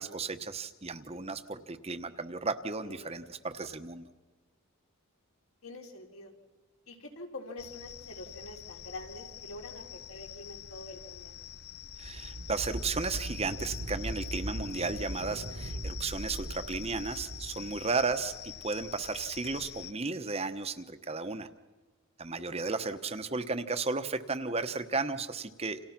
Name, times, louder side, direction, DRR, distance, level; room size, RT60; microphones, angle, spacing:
voice 1, 0.0-4.1 12.0-21.5 22.2-25.8, right 4 dB, 25° right, 9 dB, 1.1 m, -34 dB
voice 2, 2.8-3.2 5.6-6.3 6.9-11.3 22.3-22.7, left 2 dB, 70° left, 2 dB, 4.2 m, -46 dB
sound 1, 7.6-19.9, left 11 dB, 45° left, 0.7 m, -46 dB
sound 2, 11.9-18.3, right 1 dB, 65° right, 1.6 m, -40 dB
29.5 x 28.0 x 6.0 m, 1.2 s
head